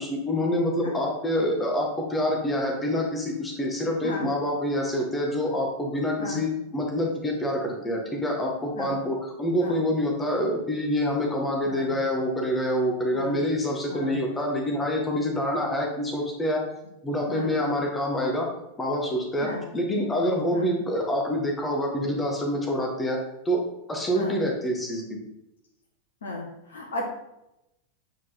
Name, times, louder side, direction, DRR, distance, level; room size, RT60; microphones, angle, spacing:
voice 1, 0.0-16.6 17.0-18.5 18.8-19.5 19.7-23.2 23.5-23.6 23.9-25.2, equal, 15° left, 0 dB, 1.9 m, -26 dB
voice 2, 11.6-12.0 13.1-13.4 13.9-14.2 17.3-17.6 19.4-19.6 20.5-20.7 24.1-24.4 26.2-27.1, left 2 dB, 65° left, 1 dB, 1.5 m, -35 dB
9.0 x 4.7 x 4.2 m, 0.88 s
figure-of-eight pair, 90°, 0 cm